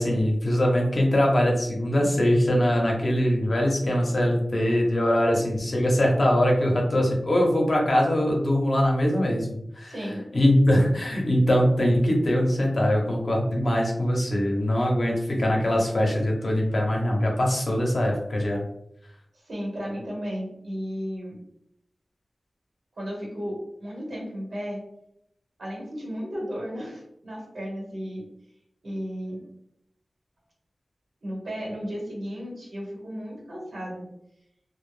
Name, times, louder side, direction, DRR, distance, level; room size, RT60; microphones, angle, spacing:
voice 1, 0.0-9.5 9.7-9.9 10.3-18.6, equal, 55° left, -1 dB, 0.6 m, -22 dB
voice 2, 9.8-10.2 19.4-21.4 23.0-24.8 25.6-28.2 28.8-29.4 31.2-34.0, equal, 80° right, -3 dB, 1.0 m, -34 dB
2.1 x 2.0 x 3.1 m, 0.79 s
wide cardioid pair, 95°, 0 cm